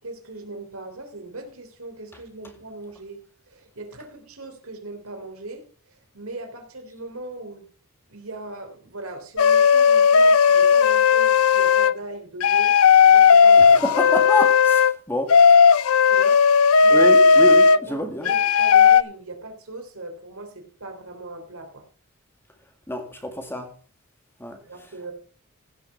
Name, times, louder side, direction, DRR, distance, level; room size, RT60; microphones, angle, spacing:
voice 1, 0.0-7.6 8.1-12.7 13.0-13.8 16.1-16.4 16.8-17.1 17.4-21.9 24.6-25.1, right 2 dB, 80° right, 3.3 m, -39 dB
sound 1, 9.4-11.9 12.4-14.9 15.3-17.8 18.3-19.0, left 6 dB, 75° left, 0.5 m, -15 dB
voice 2, 13.6-15.4 16.9-18.3 22.9-23.7 24.4-24.6, left 1 dB, 10° left, 1.9 m, -27 dB
16.0 x 6.2 x 5.6 m
head